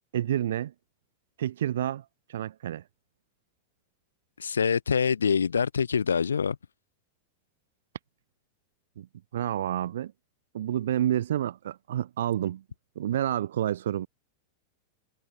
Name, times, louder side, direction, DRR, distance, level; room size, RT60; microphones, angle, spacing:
voice 1, 0.1-0.7 1.4-2.8 9.0-9.1 9.3-10.1 10.5-12.6 13.0-14.1, right 11 dB, 60° right, 4.5 m, -29 dB
voice 2, 4.4-6.6, left 6 dB, 70° left, 4.4 m, -25 dB
figure-of-eight pair, 90°, 0 cm